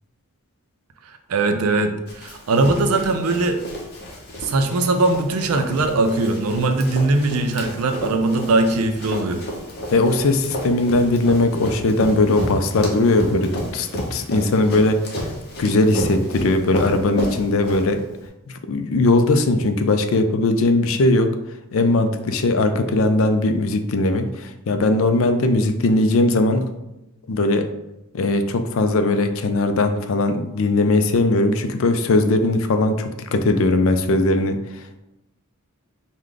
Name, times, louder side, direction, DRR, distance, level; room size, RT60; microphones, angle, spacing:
voice 1, 1.0-3.6 4.4-9.4, right 2 dB, 85° right, 7 dB, 0.5 m, -20 dB
Run, 2.1-18.2, equal, 45° left, 0.9 m, -32 dB
voice 2, 9.9-15.0 15.6-18.0 18.5-21.3 21.7-26.7 27.3-27.7 28.1-35.0, left 2 dB, 65° left, 8 dB, 0.4 m, -19 dB
4.8 x 2.2 x 3.8 m, 0.94 s
head